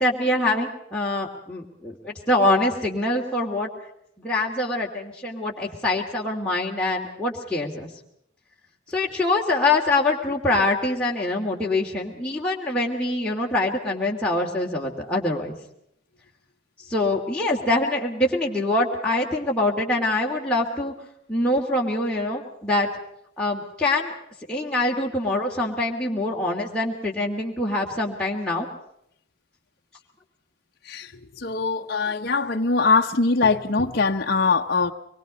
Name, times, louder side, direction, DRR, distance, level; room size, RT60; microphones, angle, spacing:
voice 1, 0.0-3.7 4.2-7.9 8.9-15.6 16.9-20.9 21.3-22.9 23.4-24.1 24.5-28.7, left 2 dB, 5° left, -4 dB, 2.6 m, -24 dB
voice 2, 31.4-34.9, left 4 dB, 55° left, 2 dB, 1.0 m, -22 dB
24.5 x 22.0 x 5.2 m, 0.75 s
head